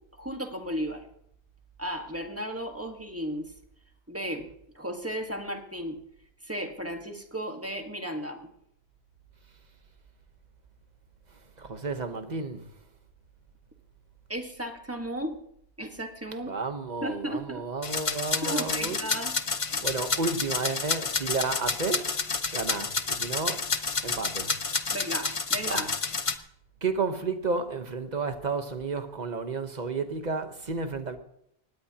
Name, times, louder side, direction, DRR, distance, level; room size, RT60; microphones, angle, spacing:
voice 1, 0.2-1.0 1.8-3.5 4.1-4.5 4.7-6.0 6.4-8.5 14.3-15.4 15.8-16.6 17.0-17.7 18.4-19.3 19.7-19.8 24.9-25.9, equal, 15° right, 1.5 m, -34 dB
voice 2, 11.6-12.7 16.5-19.0 19.8-22.1 22.5-23.7 24.0-24.5 25.6-25.9 26.8-31.2, right 4 dB, 40° right, 1.2 m, -32 dB
sound 1, 17.8-26.3, left 4 dB, 35° left, 0.7 m, -30 dB
19.5 x 17.0 x 2.9 m
omnidirectional pair, 1.1 m